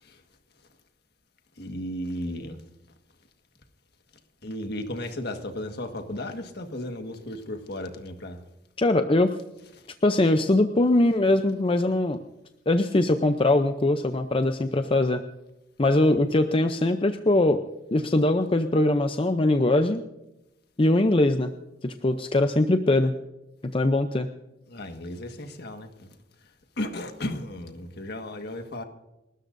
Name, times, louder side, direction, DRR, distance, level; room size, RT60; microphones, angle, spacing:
voice 1, 1.6-2.6 4.4-8.4 24.7-26.1 26.8-28.8, left 1 dB, 60° left, 1.6 m, -34 dB
voice 2, 8.8-9.3 10.0-12.2 12.7-15.2 15.8-17.6 17.9-20.0 20.8-21.5 21.8-23.1 23.7-24.3, left 2 dB, 30° left, 0.6 m, -22 dB
29.5 x 13.0 x 2.6 m
head